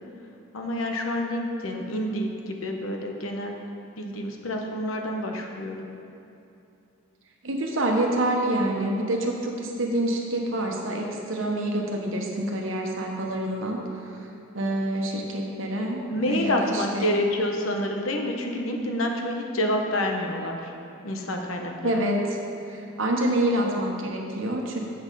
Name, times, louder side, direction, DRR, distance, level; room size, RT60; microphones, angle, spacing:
voice 1, 0.5-3.5 4.0-5.9 16.1-20.7 21.0-21.9, left 1 dB, 85° left, 2 dB, 0.9 m, -28 dB
voice 2, 7.4-13.8 14.5-17.1 21.8-22.4 22.7-24.8, right 1 dB, 75° right, 0 dB, 1.1 m, -27 dB
7.8 x 6.3 x 5.4 m, 2.8 s
head